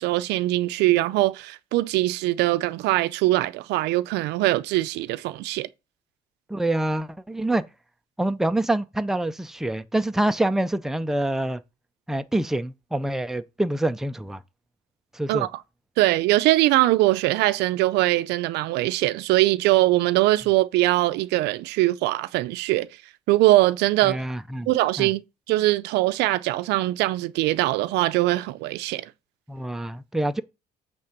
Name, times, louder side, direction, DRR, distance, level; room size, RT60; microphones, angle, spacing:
voice 1, 0.0-5.7 15.3-15.5 16.0-22.9 23.3-24.2 24.7-25.2 25.5-29.1, right 17 dB, 90° right, 0.5 m, -22 dB
voice 2, 6.5-7.6 8.2-11.6 12.1-14.4 15.1-15.5 24.1-24.7 25.0-25.1 29.5-30.4, right 1 dB, ahead, 0.5 m, -26 dB
8.5 x 3.6 x 6.6 m
cardioid pair, 110°, 17 cm